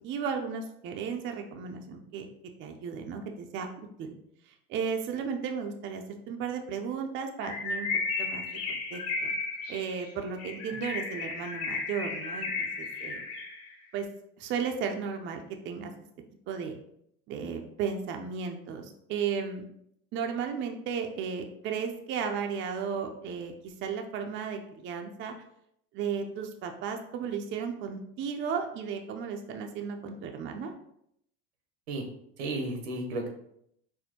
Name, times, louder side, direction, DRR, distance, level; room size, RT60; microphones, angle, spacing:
voice 1, 0.0-2.3 2.6-4.2 4.7-7.9 8.2-8.4 8.9-9.3 9.7-13.2 13.9-14.1 14.4-15.9 16.5-16.8 17.3-19.7 20.1-25.3 25.9-30.7, right 6 dB, 40° right, 4 dB, 0.4 m, -34 dB
Bird, 7.4-13.7, left 4 dB, 75° left, 0.9 m, -34 dB
voice 2, 32.4-33.3, right 2 dB, 85° right, 3 dB, 0.8 m, -33 dB
4.2 x 2.1 x 2.8 m, 0.74 s
supercardioid pair, 100°, 32 cm